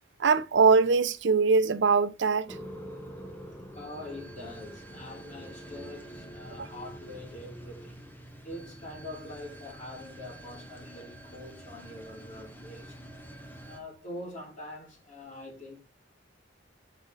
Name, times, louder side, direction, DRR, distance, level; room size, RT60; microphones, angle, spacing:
voice 1, 0.2-2.6, right 4 dB, 70° right, 0.6 m, -22 dB
sound 1, 2.5-13.8, right 1 dB, 10° left, 0.9 m, -46 dB
voice 2, 3.7-8.1 8.4-13.0 13.7-15.8, left 1 dB, 40° left, 3.0 m, -44 dB
5.9 x 5.0 x 3.9 m
head